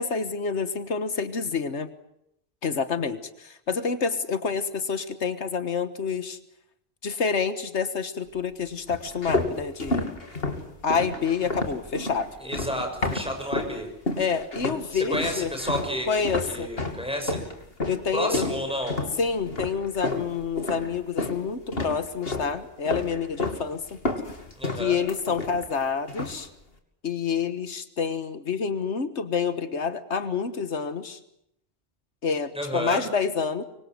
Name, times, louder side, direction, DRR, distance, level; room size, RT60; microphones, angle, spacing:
voice 1, 0.0-1.9 2.6-6.4 7.0-10.1 10.8-12.3 14.2-15.5 16.1-16.7 17.9-18.4 19.2-24.0 24.8-26.5 27.0-31.2 32.2-33.6, left 5 dB, 85° left, 11 dB, 1.7 m, -28 dB
sound 1, 8.9-13.8 14.1-14.8 15.1-21.4 21.7-22.5 22.9-23.6 23.9-25.8 26.1-26.4, left 2 dB, 60° left, 3.1 m, -30 dB
voice 2, 12.4-13.9 14.9-17.5 18.1-19.0 24.5-25.0 32.5-33.0, equal, 5° right, 4 dB, 6.5 m, -31 dB
25.0 x 25.0 x 7.9 m, 0.78 s
omnidirectional pair, 1.1 m